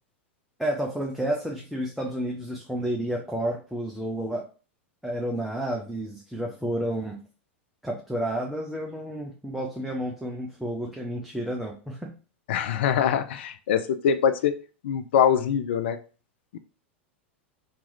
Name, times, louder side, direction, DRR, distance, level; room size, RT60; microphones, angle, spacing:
voice 1, 0.6-4.5 5.0-7.2 7.8-12.1, right 1 dB, ahead, -1 dB, 0.6 m, -30 dB
voice 2, 12.5-14.6 14.8-16.0 16.5-16.6, left 8 dB, 65° left, 9 dB, 0.4 m, -23 dB
2.9 x 2.5 x 3.8 m, 0.36 s
hypercardioid pair, 95°, 6 cm